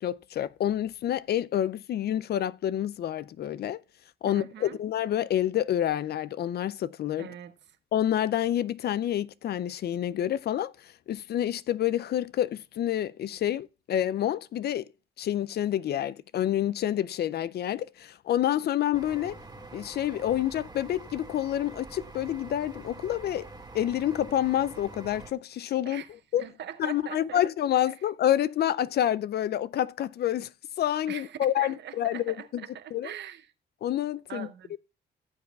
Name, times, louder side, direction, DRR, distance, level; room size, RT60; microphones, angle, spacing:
voice 1, 0.0-3.8 4.2-7.3 7.9-14.9 15.2-19.4 19.7-23.5 23.7-26.0 26.3-26.4 26.8-30.5 30.8-32.6 32.9-33.1 33.8-34.5, left 11 dB, 55° left, 0.4 m, -28 dB
voice 2, 4.2-4.8 7.2-7.5 25.8-26.1 26.4-27.5 31.1-33.5 34.3-34.8, right 10 dB, 60° right, 0.8 m, -41 dB
sound 1, 18.9-25.3, right 2 dB, 20° right, 1.4 m, -45 dB
16.5 x 7.1 x 2.3 m
cardioid pair, 90°, 20 cm